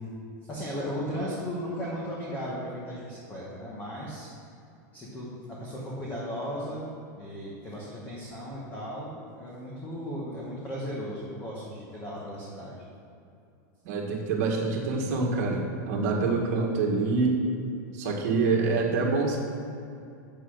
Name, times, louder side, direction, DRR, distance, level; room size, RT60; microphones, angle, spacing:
voice 1, 0.4-4.3 4.9-12.8, equal, 15° left, -6 dB, 1.3 m, -36 dB
voice 2, 13.8-17.4 17.9-19.4, right 4 dB, 50° right, -1 dB, 1.8 m, -26 dB
8.1 x 6.8 x 6.4 m, 2.6 s
supercardioid pair, 175°, 10 cm